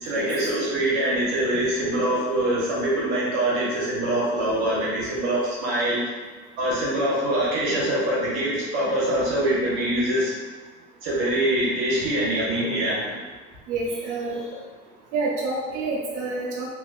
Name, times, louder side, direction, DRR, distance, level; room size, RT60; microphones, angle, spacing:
voice 1, 0.0-6.0 6.6-10.3 11.0-13.2 14.3-14.4, right 1 dB, 80° right, -6 dB, 1.3 m, -24 dB
voice 2, 13.7-14.4 15.1-16.7, right 3 dB, 65° right, -4 dB, 0.8 m, -28 dB
2.9 x 2.7 x 2.6 m, 1.4 s
supercardioid pair, 80°, 33 cm